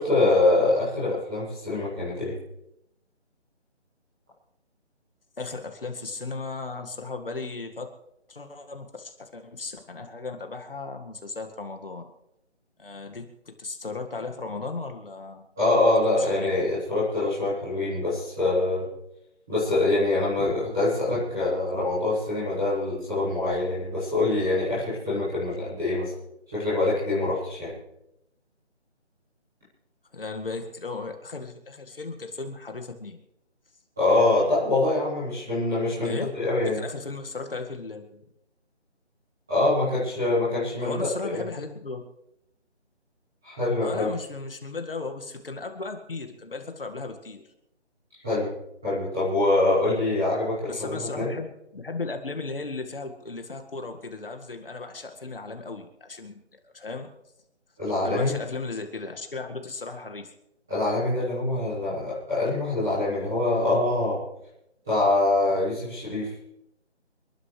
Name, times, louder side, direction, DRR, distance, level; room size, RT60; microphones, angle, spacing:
voice 1, 0.0-2.4 15.5-18.9 19.5-26.1 26.5-27.7 34.0-36.8 39.5-41.4 43.4-44.1 48.2-48.5 48.8-51.3 57.8-58.3 60.7-64.2 64.8-66.3, left 2 dB, 5° right, -16 dB, 1.2 m, -24 dB
voice 2, 5.4-7.9 8.3-12.0 12.8-13.3 13.6-15.5 16.2-16.5 30.1-33.2 36.0-36.3 36.6-38.2 40.8-42.0 43.8-47.4 50.7-57.1 58.0-60.3, left 3 dB, 50° left, 5 dB, 1.9 m, -36 dB
29.0 x 12.0 x 3.3 m, 0.83 s
figure-of-eight pair, 175°, 35 cm